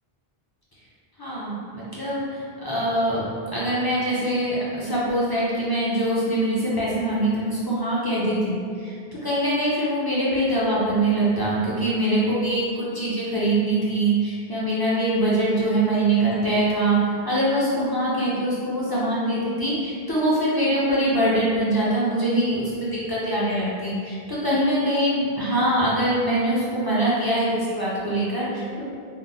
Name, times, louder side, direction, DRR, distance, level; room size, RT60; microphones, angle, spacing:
voice 1, 1.2-3.2 3.5-9.0 9.2-28.8, right 1 dB, 35° left, -8 dB, 0.4 m, -23 dB
3.5 x 2.0 x 2.6 m, 2.3 s
omnidirectional pair, 1.0 m